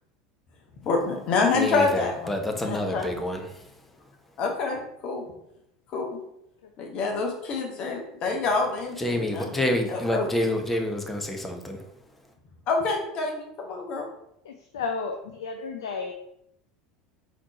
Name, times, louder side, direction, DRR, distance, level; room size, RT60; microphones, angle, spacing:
voice 1, 0.8-3.0 4.4-4.8 5.0-5.2 5.9-6.2 6.8-9.6 9.9-10.3 12.7-14.0, left 4 dB, 45° left, 1 dB, 1.1 m, -27 dB
voice 2, 1.5-3.9 9.0-11.9, left 1 dB, 10° left, 3 dB, 0.8 m, -28 dB
voice 3, 14.4-16.1, left 4 dB, 70° left, 4 dB, 0.4 m, -33 dB
4.1 x 3.0 x 4.0 m, 0.77 s
figure-of-eight pair, 75°, 2 cm